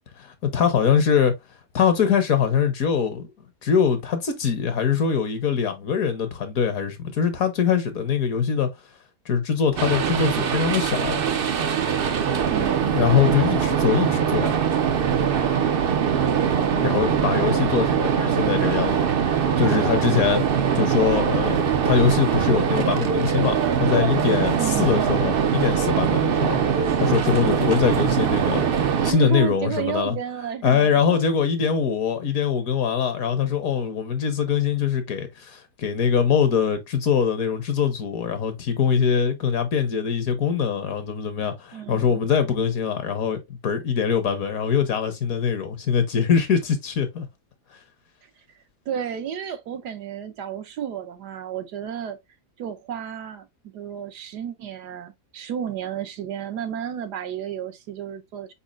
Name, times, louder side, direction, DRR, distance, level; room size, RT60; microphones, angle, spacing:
voice 1, 0.2-1.3 1.7-3.3 3.6-8.7 9.3-11.2 12.9-14.5 16.8-19.1 19.6-20.4 20.7-28.6 29.0-30.2 30.6-47.3, left 7 dB, 65° left, 1.3 m, -23 dB
sound 1, 9.8-29.1, right 7 dB, 65° right, 0.5 m, -22 dB
voice 2, 12.5-12.9 16.6-17.5 24.6-25.0 29.0-31.3 41.7-42.2 48.9-52.2 52.6-58.5, right 8 dB, 80° right, 1.4 m, -32 dB
4.5 x 4.2 x 2.4 m
omnidirectional pair, 1.7 m